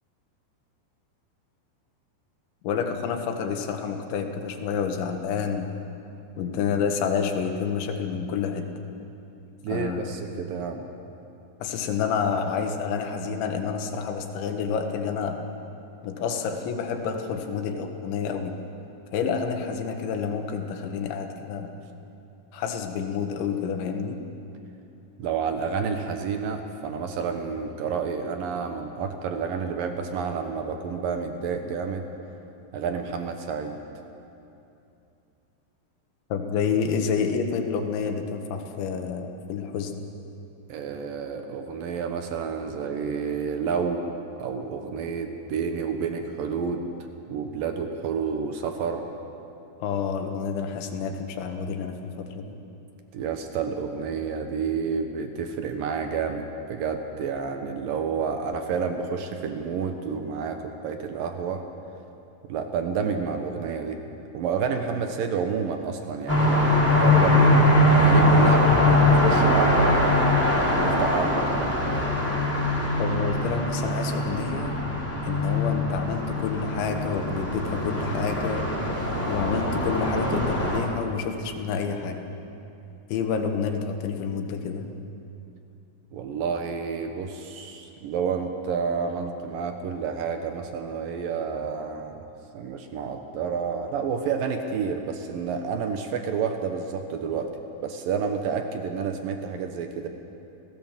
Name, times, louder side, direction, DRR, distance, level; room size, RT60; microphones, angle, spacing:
voice 1, 2.6-5.7 6.4-8.7 9.7-10.0 11.6-15.4 16.0-18.6 19.1-21.7 22.5-24.2 36.3-40.0 49.8-52.6 73.0-74.8 75.2-78.6 79.2-82.2 83.1-84.9, left 6 dB, 70° left, 5 dB, 3.7 m, -29 dB
voice 2, 9.6-10.9 25.2-32.1 32.7-33.8 40.7-44.1 44.4-46.8 47.3-49.1 53.1-61.6 62.5-64.0 64.3-67.6 68.0-72.1 86.1-92.2 92.5-97.5 97.8-100.1, right 6 dB, 75° right, 5 dB, 2.1 m, -29 dB
sound 1, 66.3-80.8, left 1 dB, 5° left, 2.8 m, -22 dB
30.0 x 17.0 x 7.5 m, 2.8 s
omnidirectional pair, 5.7 m